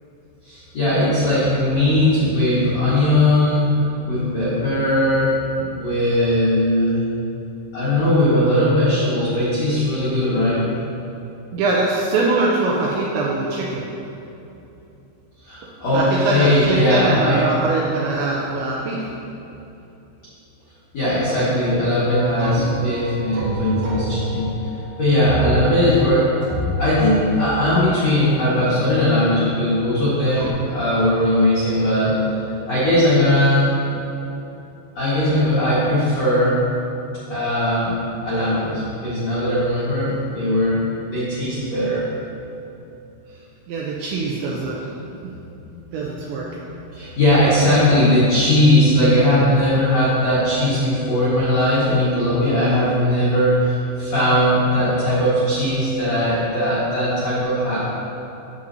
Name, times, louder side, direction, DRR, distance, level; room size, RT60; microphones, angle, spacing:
voice 1, 0.4-3.6 4.0-7.0 7.7-10.6 15.4-17.4 20.9-26.3 26.8-32.2 32.7-33.7 34.9-36.6 37.3-37.9 38.2-42.0 45.6-57.8, left 1 dB, 75° left, -11 dB, 1.5 m, -19 dB
voice 2, 11.5-13.9 15.9-19.0 43.3-43.4 43.7-44.9 45.2-45.3 45.9-46.5, right 3 dB, 85° right, -3 dB, 2.6 m, -22 dB
sound 1, 22.1-29.0 30.3-30.5, right 1 dB, 65° right, 2.8 m, -29 dB
9.6 x 7.8 x 2.7 m, 2.9 s
omnidirectional pair, 5.8 m